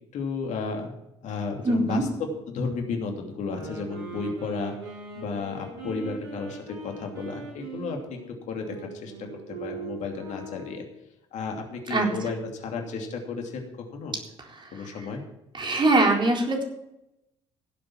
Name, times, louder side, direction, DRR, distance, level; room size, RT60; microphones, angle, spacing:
voice 1, 0.1-0.9 1.2-4.7 5.1-8.2 8.5-10.9 11.3-14.2 14.7-15.2, left 4 dB, 60° left, 2 dB, 2.8 m, -33 dB
voice 2, 1.6-2.0 11.9-12.1 15.5-16.6, right 2 dB, 35° right, 1 dB, 4.1 m, -22 dB
sound 1, 3.4-11.0, right 4 dB, 85° right, 4.2 m, -41 dB
16.5 x 7.9 x 6.1 m, 0.86 s
hypercardioid pair, 60°, 14 cm